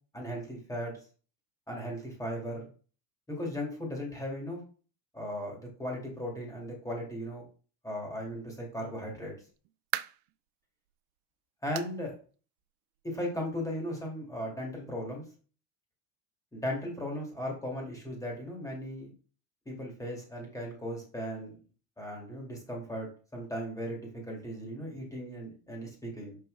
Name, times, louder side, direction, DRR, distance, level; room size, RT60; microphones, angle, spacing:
voice 1, 0.1-0.9 1.7-2.7 3.3-4.6 5.1-7.5 7.8-9.3 11.6-12.1 13.0-15.2 16.5-19.1 19.7-21.6 22.0-26.4, equal, 5° left, -2 dB, 2.0 m, -37 dB
sound 1, 9.3-10.4 10.9-11.0 11.7-12.0 12.3-12.4 12.9-13.0 14.1-14.2, right 17 dB, 90° right, 0.5 m, -38 dB
5.8 x 5.2 x 3.2 m, 0.40 s
cardioid pair, 145°, 50 cm